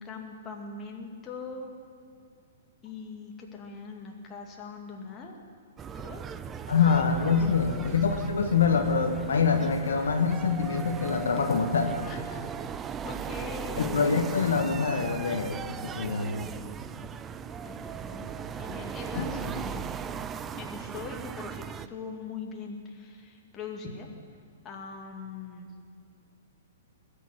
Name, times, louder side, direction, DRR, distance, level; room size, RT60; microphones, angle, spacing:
voice 1, 0.0-1.7 2.8-5.4 5.9-6.2 7.3-7.6 12.1-12.4 13.0-14.1 17.6-18.3 18.6-19.8 20.5-24.1 24.6-25.7, left 4 dB, 25° left, 1 dB, 2.3 m, -41 dB
sound 1, 5.8-21.9, right 7 dB, 20° right, 0.5 m, -38 dB
voice 2, 6.7-11.9 13.8-16.5 19.2-19.6, left 5 dB, 70° left, 4 dB, 1.2 m, -25 dB
20.0 x 7.0 x 8.7 m, 2.3 s
figure-of-eight pair, 115°, 0 cm